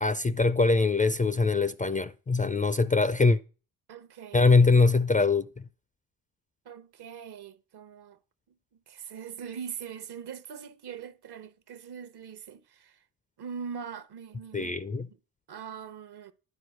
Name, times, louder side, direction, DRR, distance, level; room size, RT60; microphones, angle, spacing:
voice 1, 0.0-3.4 4.3-5.7 14.5-15.1, left 3 dB, 15° left, 0.4 m, -23 dB
voice 2, 3.9-4.4 6.6-8.2 8.9-13.0 13.4-15.1 15.5-16.3, right 7 dB, 55° right, 1.0 m, -42 dB
10.5 x 4.5 x 6.3 m
supercardioid pair, 60°, 48 cm